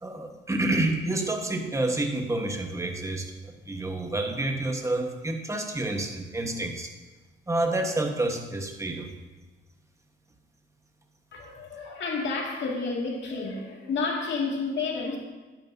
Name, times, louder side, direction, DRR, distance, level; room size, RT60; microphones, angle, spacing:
voice 1, 0.0-6.9 7.5-9.1, right 2 dB, 15° right, 3 dB, 1.3 m, -29 dB
voice 2, 11.3-15.2, left 4 dB, 65° left, -1 dB, 2.3 m, -30 dB
11.5 x 9.2 x 2.7 m, 1.2 s
cardioid pair, 90°, 20 cm